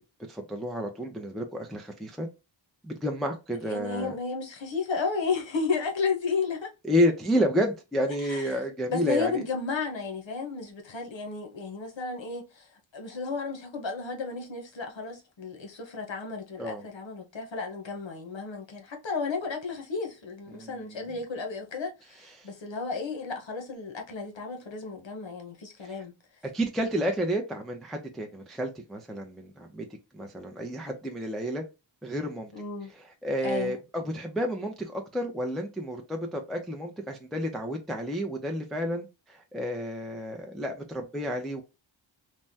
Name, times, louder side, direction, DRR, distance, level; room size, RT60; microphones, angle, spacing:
voice 1, 0.3-2.3 2.8-4.1 6.8-9.4 16.6-16.8 20.5-21.1 22.3-22.5 25.8-26.0 26.5-29.9 30.1-31.6 32.0-32.5 32.9-41.6, equal, ahead, 0.5 m, -30 dB
voice 2, 3.7-6.7 8.2-8.5 8.9-12.7 12.9-26.1 32.5-32.9 33.4-33.8, left 4 dB, 70° left, 0.9 m, -33 dB
3.3 x 2.1 x 2.7 m
wide cardioid pair, 100°, 47 cm